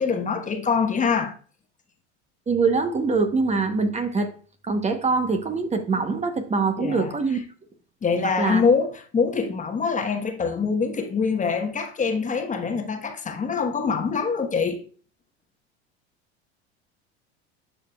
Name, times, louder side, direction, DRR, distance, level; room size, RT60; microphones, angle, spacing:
voice 1, 0.0-1.3 6.8-7.1 8.0-14.8, left 5 dB, 25° left, 1.1 m, -24 dB
voice 2, 2.5-4.3 4.6-7.4 8.4-8.7, right 4 dB, 20° right, 0.9 m, -23 dB
11.5 x 5.0 x 2.3 m
hypercardioid pair, 90°, 33 cm